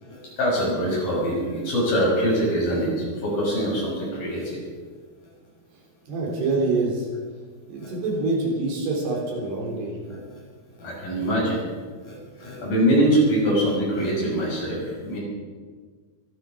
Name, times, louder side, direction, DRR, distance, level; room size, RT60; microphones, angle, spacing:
voice 1, 0.0-4.6 7.8-7.9 10.1-10.4 10.8-11.6 12.0-15.2, equal, 60° left, -4 dB, 8.0 m, -24 dB
voice 2, 6.1-7.1 7.7-9.9, right 3 dB, 85° right, -1 dB, 5.9 m, -25 dB
24.0 x 9.2 x 6.3 m, 1.5 s
omnidirectional pair, 4.7 m